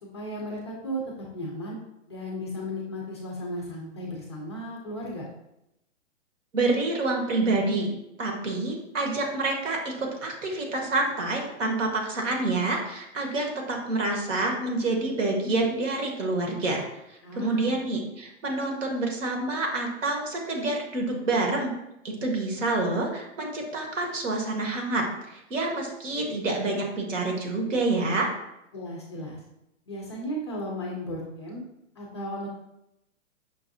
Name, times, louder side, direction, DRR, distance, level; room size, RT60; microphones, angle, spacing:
voice 1, 0.0-1.0 1.3-1.8 2.1-5.2 17.2-17.8 28.7-29.4 29.9-31.6 32.0-32.5, equal, 25° left, -2 dB, 0.3 m, -35 dB
voice 2, 6.5-21.7 22.0-28.3, right 2 dB, 80° right, 1 dB, 1.2 m, -27 dB
5.8 x 2.4 x 2.6 m, 0.86 s
hypercardioid pair, 150°, 37 cm